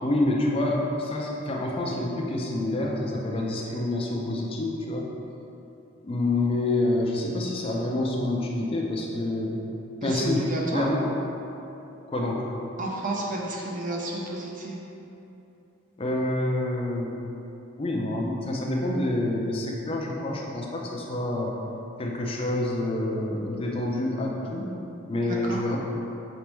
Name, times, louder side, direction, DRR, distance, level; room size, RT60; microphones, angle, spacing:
voice 1, 0.0-5.1 6.0-9.6 10.0-11.1 12.1-12.5 16.0-17.2 17.8-21.5 22.0-24.7 25.1-25.8, left 1 dB, 25° left, -2 dB, 0.5 m, -27 dB
voice 2, 10.0-10.8 12.8-14.8 25.2-25.6, right 2 dB, 40° right, -2 dB, 0.6 m, -31 dB
5.1 x 3.4 x 3.0 m, 2.9 s
head